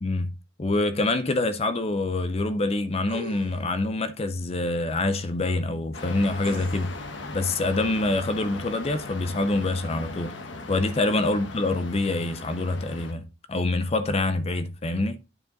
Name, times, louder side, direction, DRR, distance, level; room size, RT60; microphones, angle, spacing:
voice 1, 0.0-0.3 0.6-6.9 7.3-10.3 10.7-13.2 13.5-15.2, left 2 dB, 30° left, 0.5 m, -26 dB
sound 1, 3.1-3.8 6.4-7.0 7.9-8.0, right 2 dB, 75° right, 2.6 m, -41 dB
sound 2, 5.9-13.1, left 2 dB, 65° left, 1.1 m, -39 dB
8.9 x 4.7 x 3.9 m
head